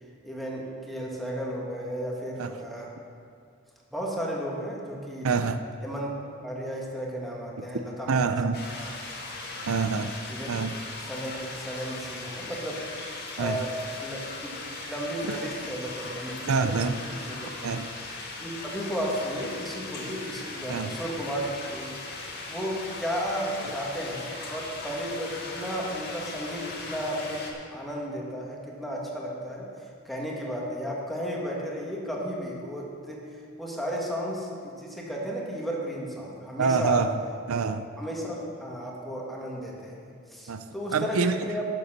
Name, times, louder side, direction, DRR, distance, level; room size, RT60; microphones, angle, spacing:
voice 1, 0.2-2.9 3.9-5.3 5.8-6.1 6.4-8.3 8.7-8.9 9.5-9.7 10.3-10.5 11.1-12.8 13.4-13.7 14.0-14.6 14.8-17.5 18.4-27.4 27.7-29.7 30.1-33.2 33.6-37.0 38.0-41.7, equal, ahead, -3 dB, 1.8 m, -34 dB
voice 2, 5.2-5.6 8.1-8.7 9.7-10.1 10.5-10.8 13.4-13.6 15.3-15.4 16.5-17.0 17.6-17.9 20.7-20.9 23.6-23.7 36.6-37.2 37.5-37.9 40.5-40.6 40.9-41.4, right 5 dB, 85° right, 10 dB, 0.5 m, -26 dB
sound 1, 8.5-27.5, left 3 dB, 50° left, 1.8 m, -39 dB
11.5 x 6.9 x 6.6 m, 2.2 s
head